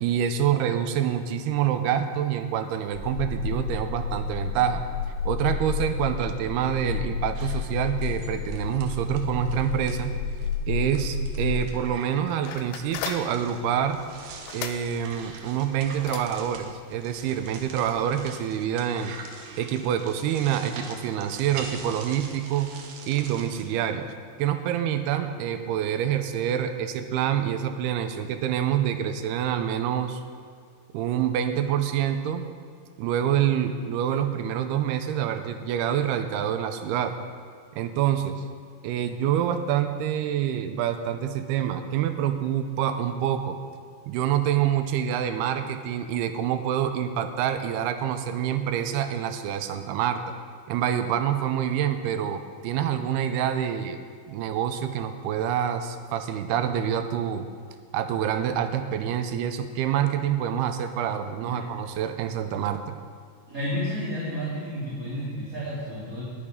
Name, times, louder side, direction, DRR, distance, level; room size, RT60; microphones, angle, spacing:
voice 1, 0.0-4.8 5.3-10.1 10.7-14.0 14.5-19.2 19.6-22.7 23.1-24.1 24.4-30.2 30.9-32.5 33.0-37.2 37.8-38.4 38.8-43.6 44.1-50.2 50.7-54.0 54.3-57.5 57.9-63.0, right 9 dB, 85° right, 8 dB, 2.7 m, -26 dB
sound 1, 2.9-11.5, left 5 dB, 45° left, 1.9 m, -31 dB
sound 2, 7.3-10.0 10.4-10.6 10.9-23.7, right 5 dB, 70° right, 2.7 m, -44 dB
sound 3, 12.4-18.4, left 8 dB, 85° left, 2.9 m, -40 dB
voice 2, 63.5-66.2, equal, 25° right, -9 dB, 2.6 m, -31 dB
20.5 x 6.8 x 5.3 m, 2.1 s
omnidirectional pair, 4.6 m